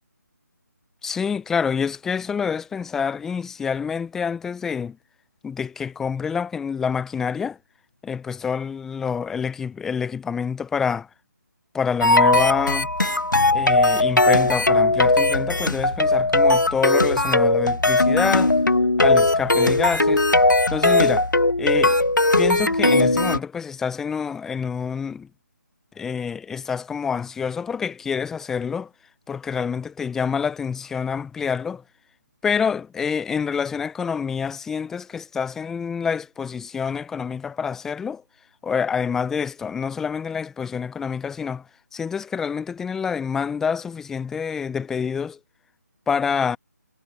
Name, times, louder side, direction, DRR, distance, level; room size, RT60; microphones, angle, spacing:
voice 1, 1.0-5.0 5.4-7.6 8.0-11.1 11.7-12.9 13.5-18.5 19.0-20.2 20.7-21.3 21.6-22.0 22.4-25.3 26.0-28.9 29.3-31.8 32.4-38.2 38.6-41.6 41.9-45.4 46.1-46.6, left 6 dB, 5° left, 0.7 m, -27 dB
sound 1, 12.0-23.4, left 2 dB, 85° left, 1.6 m, -18 dB
figure-of-eight pair, 155°, 10 cm